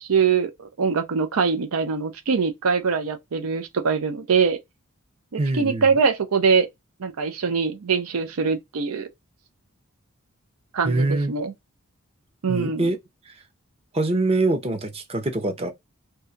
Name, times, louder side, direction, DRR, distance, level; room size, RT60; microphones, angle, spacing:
voice 1, 0.0-4.6 5.3-6.7 7.0-9.1 10.7-11.5 12.4-12.9, right 5 dB, 90° right, 0.5 m, -23 dB
voice 2, 5.4-5.9 10.8-11.3 12.5-13.0 13.3-13.4 13.9-15.7, right 2 dB, 25° right, 0.5 m, -24 dB
2.7 x 2.2 x 3.7 m
head